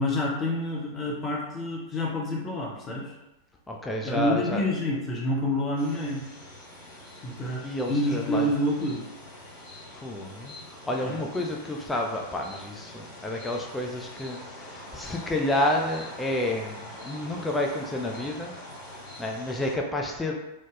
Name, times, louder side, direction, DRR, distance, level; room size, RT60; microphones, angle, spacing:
voice 1, 0.0-3.1 4.0-6.2 7.2-9.0 11.0-11.2, left 1 dB, 25° left, -2 dB, 0.7 m, -28 dB
voice 2, 3.7-4.6 7.6-8.5 9.9-18.5 19.2-20.3, left 1 dB, 10° left, 1 dB, 0.3 m, -30 dB
sound 1, 5.8-19.7, left 1 dB, 60° left, 1.1 m, -44 dB
3.2 x 2.0 x 2.4 m, 0.95 s
figure-of-eight pair, 90°, 0 cm